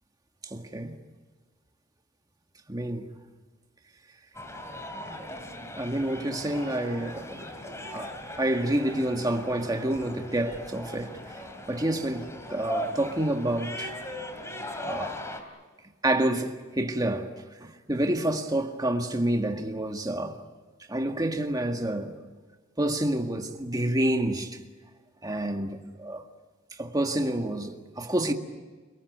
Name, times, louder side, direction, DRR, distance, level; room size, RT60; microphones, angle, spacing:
voice 1, 0.4-1.0 2.7-3.1 5.7-7.5 7.9-11.2 11.7-13.9 14.8-15.2 16.0-17.3 17.6-20.4 20.9-22.1 22.8-24.6 25.2-26.3 26.8-28.3, right 1 dB, 20° right, 1.8 m, -28 dB
sound 1, 4.3-15.4, left 1 dB, 15° left, 3.0 m, -39 dB
29.5 x 19.0 x 9.4 m
head